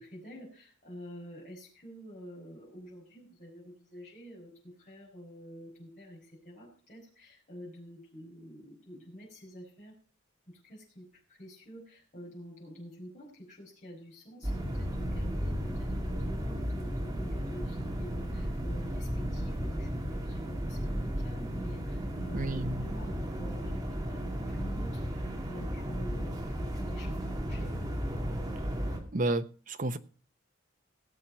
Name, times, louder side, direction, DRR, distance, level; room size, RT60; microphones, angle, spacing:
voice 1, 0.0-9.9 10.5-27.8, equal, 40° left, -6 dB, 5.8 m, -48 dB
sound 1, 14.4-29.0, equal, 20° right, 2.4 m, -34 dB
voice 2, 22.3-22.9 29.1-30.0, right 2 dB, 45° right, 10 dB, 0.8 m, -31 dB
17.0 x 7.6 x 5.5 m, 0.39 s
head